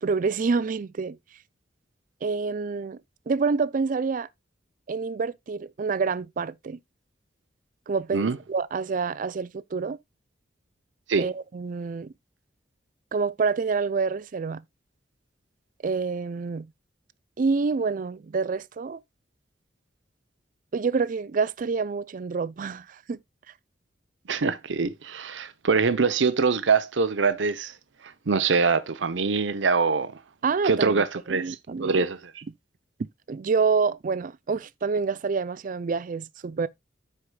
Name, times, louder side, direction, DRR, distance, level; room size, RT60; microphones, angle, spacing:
voice 1, 0.0-1.2 2.2-3.0 3.3-4.3 4.9-6.8 7.9-10.0 11.2-12.1 13.1-14.6 15.8-16.7 17.4-19.0 20.7-23.2 30.4-32.0 33.0-36.7, right 4 dB, 45° right, 0.4 m, -27 dB
voice 2, 24.3-27.7 28.3-30.1 30.6-32.4, right 4 dB, 80° right, 0.7 m, -24 dB
14.5 x 4.8 x 2.2 m
head